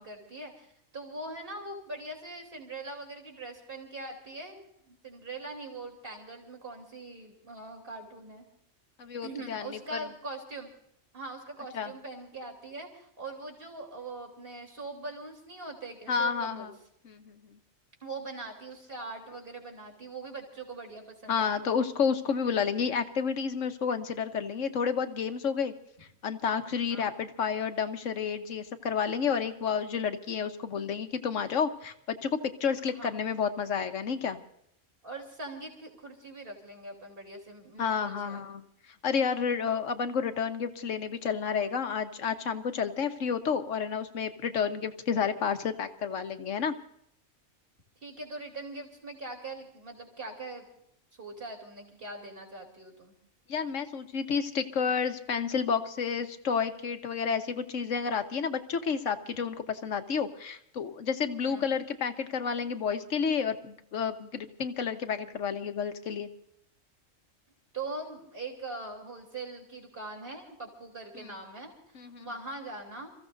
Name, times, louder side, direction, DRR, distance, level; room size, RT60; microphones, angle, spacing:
voice 1, 0.0-8.5 9.2-10.7 11.1-16.7 18.0-21.6 26.9-27.1 32.9-33.2 35.0-38.4 48.0-50.7 51.1-53.2 61.4-61.7 67.7-73.1, right 2 dB, 45° right, 1 dB, 3.8 m, -42 dB
voice 2, 9.0-10.0 11.7-11.9 16.1-16.7 17.0-17.5 21.3-25.7 26.2-34.4 37.8-38.6 39.0-46.7 53.5-66.3 71.2-71.3 71.9-72.3, left 6 dB, 70° left, 8 dB, 1.5 m, -30 dB
28.5 x 15.5 x 2.7 m, 0.72 s
omnidirectional pair, 1.4 m